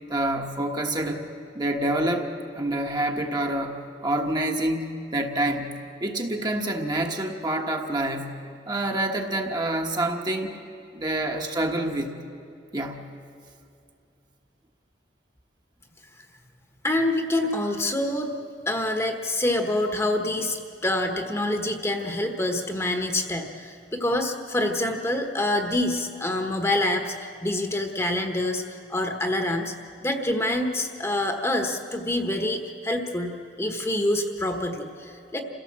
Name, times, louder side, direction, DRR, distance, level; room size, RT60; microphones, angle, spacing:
voice 1, 0.1-1.2 1.5-8.4 8.7-10.5 10.9-12.2 12.7-13.1, right 1 dB, 25° right, 2 dB, 1.3 m, -27 dB
voice 2, 16.8-18.3 18.7-28.6 28.9-29.7 30.0-35.4, left 1 dB, 15° left, 4 dB, 1.3 m, -26 dB
28.0 x 16.5 x 7.4 m, 2.5 s
head